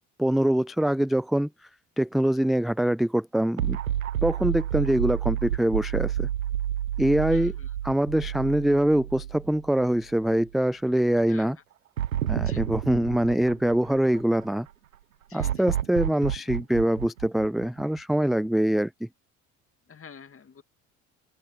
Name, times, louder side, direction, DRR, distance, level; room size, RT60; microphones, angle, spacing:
voice 1, 0.2-1.5 2.0-3.8 4.2-6.3 7.0-7.6 7.8-11.6 12.3-14.7 15.3-18.9, right 1 dB, ahead, 0.3 m, -24 dB
sound 1, 3.6-9.9 10.3-10.4 12.0-14.4 15.4-18.2, right 11 dB, 90° right, 0.9 m, -30 dB
voice 2, 7.3-7.7 11.3-11.5 12.4-12.6 15.3-15.7 19.9-20.6, left 6 dB, 35° left, 2.5 m, -47 dB
open air
hypercardioid pair, 55°, 40 cm